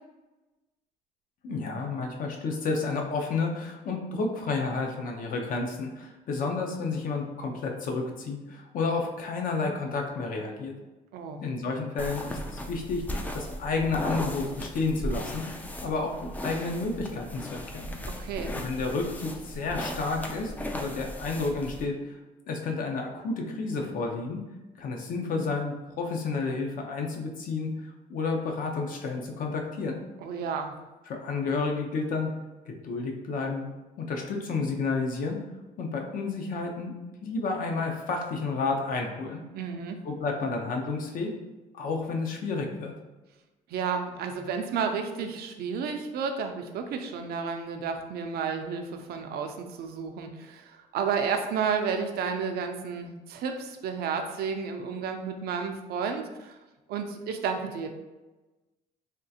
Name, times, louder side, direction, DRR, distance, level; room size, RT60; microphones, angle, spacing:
voice 1, 1.4-10.7 11.4-15.5 15.8-18.0 18.5-22.2 22.5-24.4 24.8-30.0 31.1-32.3 32.7-33.7 34.0-35.4 35.8-39.4 40.0-41.3 41.7-42.9, left 3 dB, 55° left, 2 dB, 0.6 m, -31 dB
voice 2, 11.1-11.4 18.1-18.6 30.2-30.8 39.5-40.0 43.7-56.6 56.9-57.9, right 6 dB, 65° right, 5 dB, 0.5 m, -32 dB
Brush hair, 12.0-21.9, left 1 dB, 10° left, 0.3 m, -36 dB
3.5 x 2.4 x 2.7 m, 1.1 s
cardioid pair, 110°, 17 cm